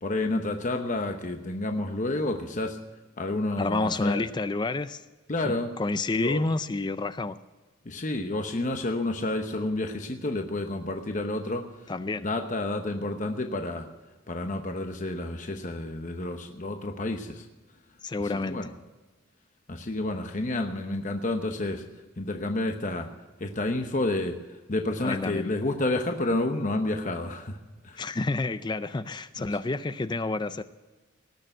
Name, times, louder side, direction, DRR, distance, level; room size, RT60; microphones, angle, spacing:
voice 1, 0.0-2.8 3.2-4.2 5.3-5.7 6.1-6.5 7.8-11.6 12.2-13.9 14.3-17.5 18.2-18.7 19.7-21.8 22.2-23.1 23.4-27.6 27.8-28.0 29.4-29.5, left 2 dB, 40° left, 5 dB, 0.9 m, -30 dB
voice 2, 3.6-5.0 5.4-7.4 11.9-12.3 18.0-18.7 25.0-25.5 28.0-30.6, left 3 dB, 20° left, 13 dB, 0.4 m, -29 dB
18.5 x 6.8 x 9.0 m, 1.3 s
head